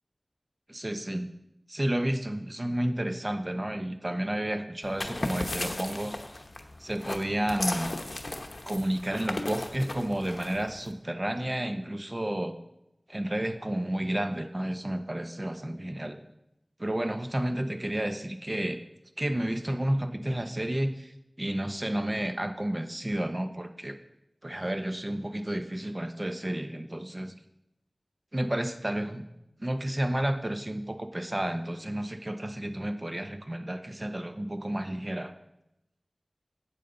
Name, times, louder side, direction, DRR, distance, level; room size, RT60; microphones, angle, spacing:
voice 1, 0.7-1.3 1.7-6.2 6.8-7.9 8.7-12.6 13.1-16.3 16.8-18.8 19.2-24.0 24.4-27.3 28.3-29.2 29.6-35.3, right 1 dB, 35° right, 8 dB, 0.9 m, -31 dB
sound 1, 4.8-10.9, left 2 dB, 65° left, 1.0 m, -36 dB
12.0 x 8.4 x 3.9 m, 0.86 s
wide cardioid pair, 45°, 0 cm